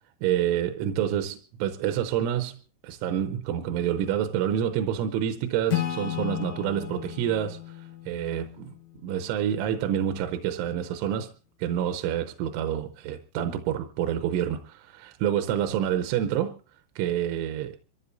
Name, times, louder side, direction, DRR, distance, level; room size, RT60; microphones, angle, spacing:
voice 1, 0.2-2.6 2.8-11.3 11.6-16.5 17.0-17.8, right 10 dB, 85° right, 3.3 m, -28 dB
Acoustic guitar / Strum, 5.7-9.3, left 13 dB, 90° left, 1.6 m, -34 dB
26.5 x 15.0 x 2.6 m
omnidirectional pair, 5.5 m